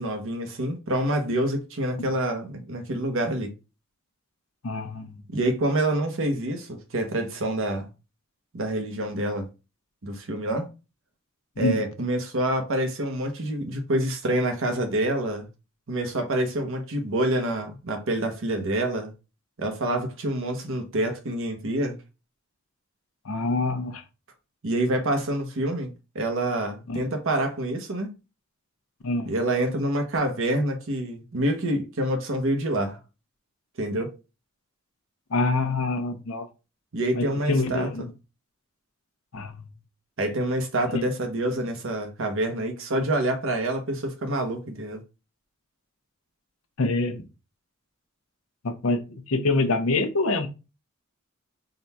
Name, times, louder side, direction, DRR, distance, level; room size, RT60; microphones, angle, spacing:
voice 1, 0.0-3.5 5.3-7.9 8.5-9.5 10.0-10.7 11.6-15.5 15.9-19.1 19.6-22.0 24.6-28.1 29.3-33.0 33.8-34.2 36.9-38.1 40.2-45.0, right 1 dB, 65° right, 0.8 m, -27 dB
voice 2, 4.6-5.2 11.6-11.8 23.2-24.0 26.9-27.0 29.0-29.3 35.3-36.5 37.1-38.0 39.3-39.6 40.9-41.0 46.8-47.2 48.6-49.0 49.3-50.5, left 3 dB, 75° left, 0.7 m, -25 dB
3.8 x 2.3 x 4.1 m
head